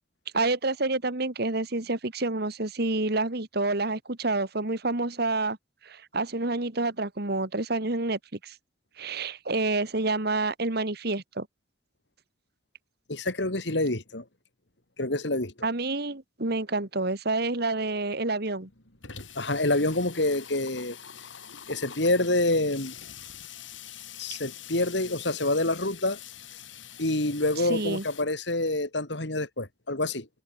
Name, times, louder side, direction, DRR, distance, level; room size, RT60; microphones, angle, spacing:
voice 1, 0.3-5.6 5.8-8.6 9.0-11.5 15.6-18.7 27.7-28.0, right 2 dB, 55° right, 2.1 m, -28 dB
voice 2, 13.1-14.2 15.0-15.5 19.3-21.0 21.7-22.9 24.2-26.2 27.0-30.3, left 2 dB, 65° left, 3.3 m, -27 dB
Water tap faucet / Sink (filling or washing), 17.6-17.7 18.0-18.1 18.3-28.2, left 9 dB, 90° left, 7.6 m, -45 dB
head